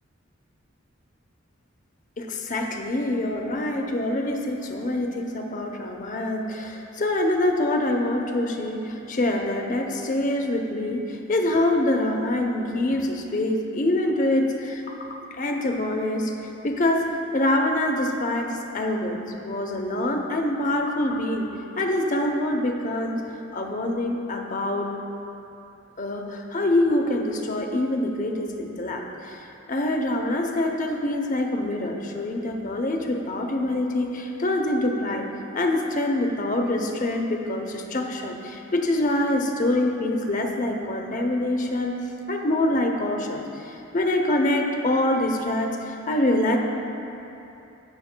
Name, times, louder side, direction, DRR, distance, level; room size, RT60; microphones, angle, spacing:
voice 1, 2.2-16.3 16.6-17.0 17.3-21.5 21.8-23.2 23.5-24.9 26.0-29.4 29.7-35.3 35.5-41.9 42.3-46.6, left 1 dB, 40° left, 3 dB, 0.7 m, -25 dB
15.5 x 6.2 x 2.2 m, 2.9 s
head